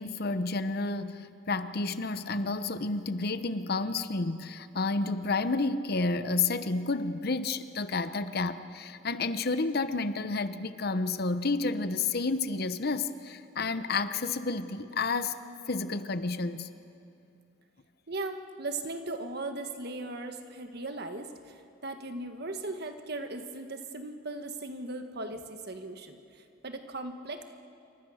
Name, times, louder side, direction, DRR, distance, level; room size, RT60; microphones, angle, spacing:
voice 1, 0.0-15.4 15.7-16.7, left 3 dB, 50° left, 11 dB, 0.9 m, -30 dB
voice 2, 18.1-27.4, right 2 dB, 55° right, 6 dB, 1.6 m, -38 dB
28.0 x 24.5 x 6.4 m, 2.6 s
head